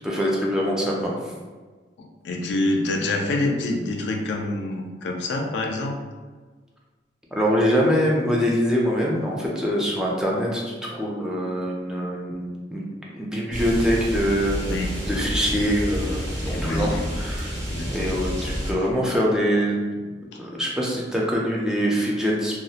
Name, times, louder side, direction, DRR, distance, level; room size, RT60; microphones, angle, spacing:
voice 1, 0.0-1.1 7.3-12.8 13.1-14.6 15.1-17.5 17.9-19.8 20.4-22.5, equal, 5° right, -3 dB, 0.3 m, -24 dB
voice 2, 2.0-6.0 14.6-14.9 16.5-17.2 17.7-17.9, left 2 dB, 70° left, 2 dB, 0.4 m, -26 dB
sound 1, 13.5-18.7, equal, 85° right, 0.8 m, -29 dB
2.3 x 2.0 x 2.7 m, 1.4 s
head